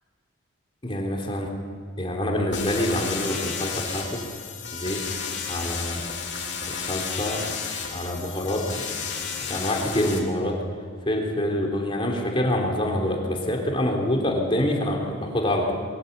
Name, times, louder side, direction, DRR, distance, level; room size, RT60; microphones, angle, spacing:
voice 1, 0.8-1.5 2.0-4.2 4.7-5.0 5.5-6.0 6.7-7.4 7.9-8.8 9.5-10.6 11.1-15.8, left 1 dB, 25° left, 0 dB, 3.4 m, -26 dB
sound 1, 2.5-10.2, left 6 dB, 65° left, 3.5 m, -32 dB
23.0 x 14.5 x 8.3 m, 2.2 s
head